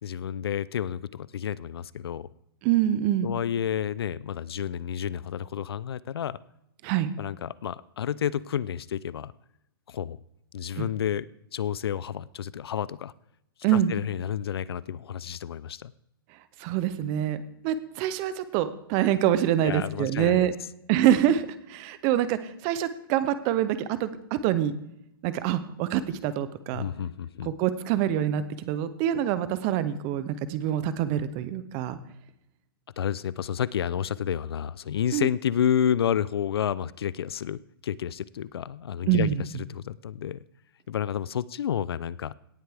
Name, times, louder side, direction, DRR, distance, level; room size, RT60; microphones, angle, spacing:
voice 1, 0.0-2.3 3.2-6.4 7.2-9.3 9.9-10.2 10.5-13.1 13.7-15.9 19.6-20.5 26.7-27.5 33.0-40.5 40.9-42.3, left 9 dB, 85° left, 20 dB, 0.4 m, -30 dB
voice 2, 2.6-3.3 6.8-7.1 10.8-10.9 13.6-13.9 16.6-20.5 20.9-24.8 25.2-26.9 27.4-32.0 35.1-35.3 39.1-39.4, right 11 dB, 20° right, 14 dB, 0.5 m, -25 dB
17.5 x 8.0 x 3.4 m, 0.81 s
hypercardioid pair, 170°, 13 cm